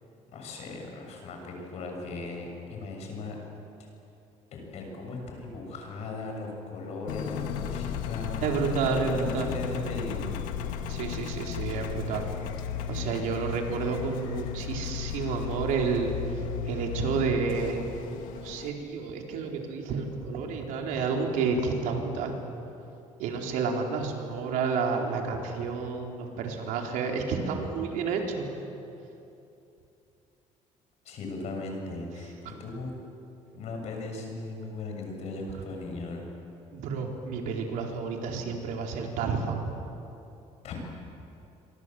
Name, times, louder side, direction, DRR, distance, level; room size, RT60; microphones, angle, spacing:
voice 1, 0.3-3.4 3.8-3.9 4.5-8.8 9.0-10.4 31.0-32.9 33.5-36.3 40.6-40.8, left 3 dB, 55° left, 1 dB, 7.1 m, -37 dB
Engine, 7.1-18.7, left 8 dB, 90° left, 1.6 m, -35 dB
voice 2, 8.4-9.5 10.9-12.3 12.9-17.8 18.3-22.4 23.2-28.5 32.5-32.6 36.7-39.6, right 5 dB, 80° right, 1 dB, 4.2 m, -30 dB
28.0 x 24.5 x 7.8 m, 2.8 s
cardioid pair, 155°, 13 cm